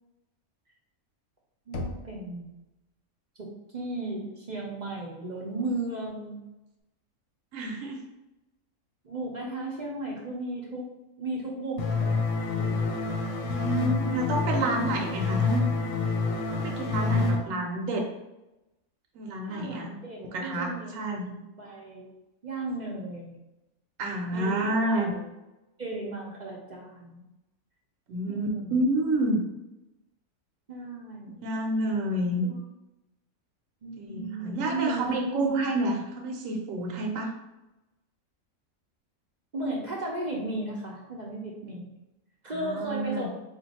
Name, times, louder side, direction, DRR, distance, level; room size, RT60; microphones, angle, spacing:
Knock, 1.7-2.6, left 2 dB, 85° left, 0.4 m, -37 dB
voice 1, 1.7-2.6 3.4-6.4 9.0-10.9 11.2-12.8 17.1-17.6 19.4-22.1 22.4-23.4 24.3-25.3 25.8-27.3 28.3-28.8 30.7-31.4 32.4-32.5 33.8-35.6 39.5-41.9 42.4-43.3, right 2 dB, 50° right, -3 dB, 0.5 m, -35 dB
voice 2, 7.5-8.0 13.4-15.7 16.5-18.1 19.1-19.9 20.2-21.3 24.0-25.1 28.1-29.4 31.4-32.4 34.0-37.3 42.5-43.3, right 1 dB, 70° right, 0 dB, 1.0 m, -29 dB
sound 1, 11.8-17.4, left 4 dB, 65° left, 0.9 m, -27 dB
3.7 x 2.5 x 4.1 m, 0.96 s
omnidirectional pair, 1.5 m